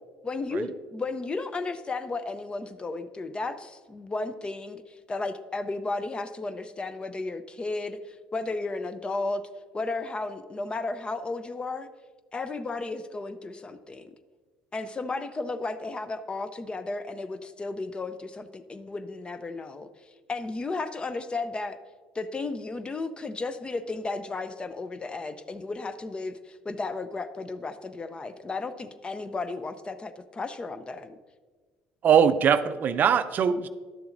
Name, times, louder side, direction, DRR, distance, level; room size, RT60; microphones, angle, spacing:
voice 1, 0.2-9.4 9.7-11.9 12.3-14.1 14.7-19.9 20.3-21.8 22.1-31.2, left 3 dB, 25° left, 12 dB, 0.5 m, -34 dB
voice 2, 32.0-33.7, right 8 dB, 50° right, 12 dB, 0.4 m, -21 dB
11.5 x 6.8 x 2.6 m, 1.4 s
supercardioid pair, 75°, 4 cm